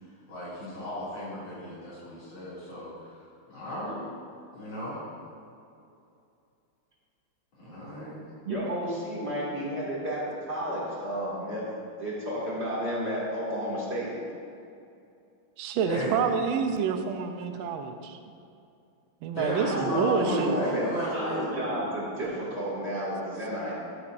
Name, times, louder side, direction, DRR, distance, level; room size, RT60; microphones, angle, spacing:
voice 1, 0.0-3.2 3.5-4.0 4.5-5.0 7.6-8.2 15.9-16.2 19.3-21.8, equal, 80° left, -11 dB, 3.4 m, -34 dB
voice 2, 8.4-11.7 12.0-14.1 19.5-23.7, equal, 30° right, -7 dB, 2.3 m, -31 dB
voice 3, 15.6-18.2 19.2-20.6, right 6 dB, 85° right, 7 dB, 1.4 m, -28 dB
12.0 x 8.7 x 2.5 m, 2.6 s
omnidirectional pair, 2.2 m